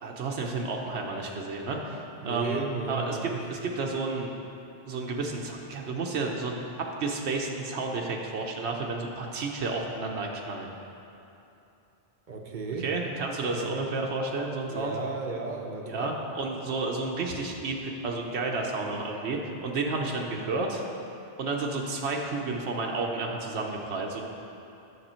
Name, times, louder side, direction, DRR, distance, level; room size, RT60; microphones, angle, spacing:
voice 1, 0.0-2.6 2.9-4.3 4.9-6.6 7.0-10.7 12.8-14.9 15.9-20.8 21.4-24.2, right 3 dB, 85° right, 0 dB, 1.0 m, -31 dB
voice 2, 2.2-3.4 12.3-12.8 13.5-13.7 14.7-16.1, right 3 dB, 50° right, 1 dB, 0.8 m, -34 dB
9.6 x 6.8 x 4.3 m, 2.9 s
omnidirectional pair, 1.1 m